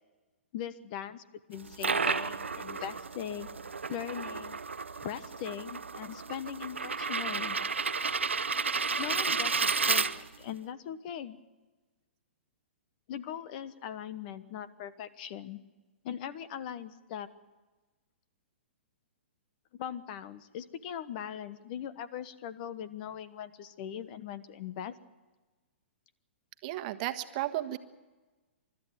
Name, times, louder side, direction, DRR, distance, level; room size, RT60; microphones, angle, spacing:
voice 1, 0.5-1.2 1.5-3.5 3.9-4.6 5.0-7.6 9.0-11.4 13.1-15.6 16.0-17.3 19.7-24.9, left 9 dB, 45° left, 14 dB, 1.2 m, -40 dB
sound 1, 1.5-10.5, right 5 dB, 85° right, 0.8 m, -32 dB
voice 2, 26.6-27.8, right 15 dB, 40° right, 9 dB, 1.3 m, -33 dB
29.0 x 13.5 x 9.0 m, 1.2 s
hypercardioid pair, 120°, 6 cm